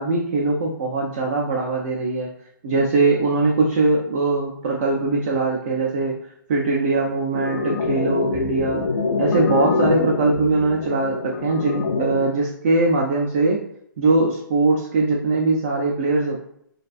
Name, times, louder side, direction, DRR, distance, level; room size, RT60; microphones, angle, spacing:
voice 1, 0.0-2.3 2.6-6.2 6.5-8.8 9.2-13.6 14.0-16.4, right 3 dB, 35° right, -1 dB, 0.4 m, -21 dB
sound 1, 7.3-12.3, left 4 dB, 90° left, 0.4 m, -25 dB
2.4 x 2.2 x 2.4 m, 0.71 s
hypercardioid pair, 160°, 12 cm